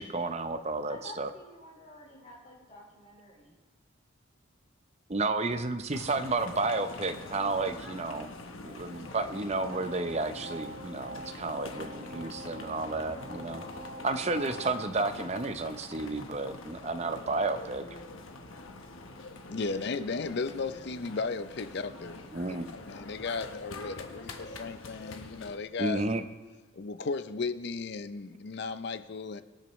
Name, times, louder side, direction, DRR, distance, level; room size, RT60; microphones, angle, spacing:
voice 1, 0.0-1.3 5.1-8.3 8.6-13.6 14.0-17.8 22.3-22.6 25.8-26.2, right 3 dB, 30° right, 0.6 m, -32 dB
voice 2, 0.9-3.5, left 2 dB, 35° left, 4.4 m, -49 dB
sound 1, 5.9-25.6, left 2 dB, 75° left, 1.1 m, -45 dB
sound 2, 9.5-14.8, right 1 dB, 75° right, 4.2 m, -45 dB
voice 3, 19.5-22.2 22.5-22.6 22.9-26.1 26.7-29.4, left 4 dB, 50° left, 0.5 m, -35 dB
24.0 x 8.9 x 3.1 m
head